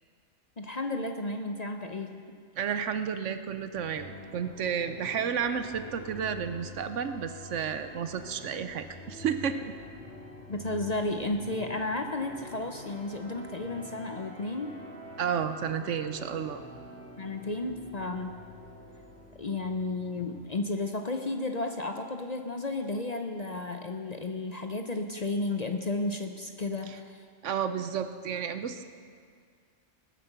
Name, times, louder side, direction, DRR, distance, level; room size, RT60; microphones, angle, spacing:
voice 1, 0.6-2.2 10.5-14.7 17.2-18.5 19.4-27.3, left 2 dB, 40° left, 5 dB, 0.7 m, -33 dB
voice 2, 2.6-9.7 15.2-16.6 27.4-28.8, right 7 dB, 70° right, 10 dB, 1.1 m, -32 dB
sound 1, 3.7-20.6, left 1 dB, 5° left, 1.8 m, -47 dB
19.5 x 8.4 x 6.8 m, 2.1 s
omnidirectional pair, 1.3 m